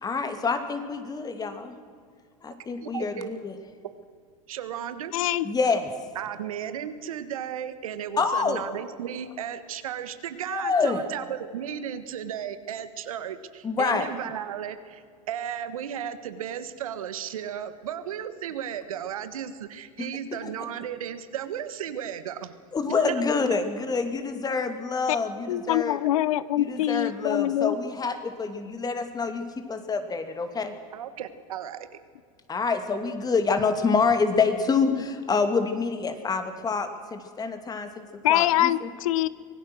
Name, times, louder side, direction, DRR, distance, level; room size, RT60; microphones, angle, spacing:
voice 1, 0.0-1.8 2.4-3.5 5.4-5.9 8.2-8.6 10.5-11.0 13.6-14.1 20.0-20.1 20.4-20.5 22.7-26.0 26.6-30.7 32.5-38.9, left 4 dB, 20° left, 8 dB, 2.6 m, -27 dB
voice 2, 2.8-3.4 4.5-5.1 6.1-22.5 22.9-23.2 30.9-31.9, right 9 dB, 90° right, 11 dB, 1.6 m, -35 dB
voice 3, 5.1-5.5 25.1-25.2 25.5-27.8 34.9-35.0 38.2-39.3, left 13 dB, 80° left, 18 dB, 0.9 m, -24 dB
25.0 x 17.5 x 6.3 m, 2.1 s
hypercardioid pair, 110°, 17 cm